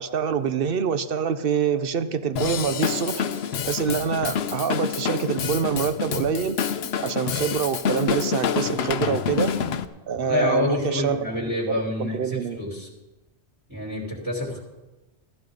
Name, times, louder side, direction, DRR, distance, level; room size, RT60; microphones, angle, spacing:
voice 1, 0.0-3.2 3.7-6.6 7.0-9.6 10.1-11.2 11.7-12.6, right 7 dB, 60° right, 11 dB, 0.9 m, -26 dB
Drum kit / Drum, 2.4-9.9, left 7 dB, 70° left, 0.9 m, -27 dB
voice 2, 10.1-12.9 13.7-14.6, left 2 dB, 15° right, -5 dB, 2.8 m, -27 dB
14.5 x 14.5 x 3.9 m, 1.1 s
omnidirectional pair, 1.1 m